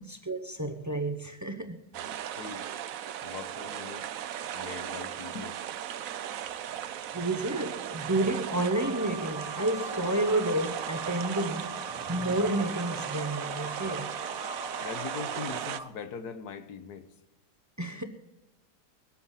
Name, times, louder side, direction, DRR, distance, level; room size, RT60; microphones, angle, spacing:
voice 1, 0.0-1.8 7.1-14.1 17.8-18.0, right 2 dB, 25° right, 0.3 m, -30 dB
sound 1, 1.9-15.8, right 10 dB, 65° right, 0.9 m, -37 dB
voice 2, 2.3-2.6 3.2-4.0 4.5-5.6 14.8-17.1, left 6 dB, 65° left, 1.4 m, -41 dB
sound 2, 8.7-15.9, right 1 dB, 5° right, 1.4 m, -41 dB
21.5 x 8.6 x 5.5 m
omnidirectional pair, 1.9 m